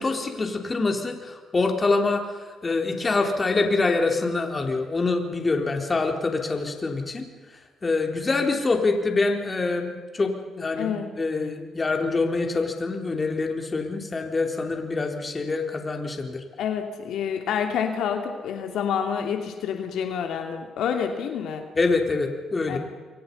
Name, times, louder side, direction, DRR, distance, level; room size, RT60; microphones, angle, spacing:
voice 1, 0.0-2.2 2.6-7.2 7.8-16.4 21.7-22.8, left 3 dB, 30° left, 3 dB, 4.0 m, -25 dB
voice 2, 16.6-21.6 22.7-22.8, left 7 dB, 80° left, 4 dB, 2.8 m, -28 dB
28.5 x 23.5 x 5.6 m, 1.4 s
cardioid pair, 90°, 0 cm